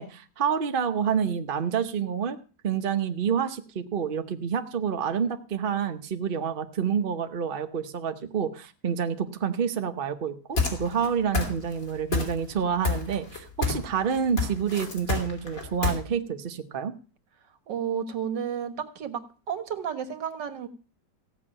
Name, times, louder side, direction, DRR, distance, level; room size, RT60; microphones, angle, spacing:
voice 1, 0.0-2.4 2.6-16.9, right 7 dB, 40° right, 7 dB, 0.8 m, -28 dB
sound 1, 10.6-11.1 11.3-11.8 12.1-12.6 12.8-13.9 14.1-15.9, left 4 dB, 50° left, 3.3 m, -27 dB
voice 2, 17.7-19.2 19.5-20.7, right 8 dB, 80° right, 8 dB, 2.0 m, -31 dB
15.5 x 6.1 x 8.7 m, 0.37 s
omnidirectional pair, 1.9 m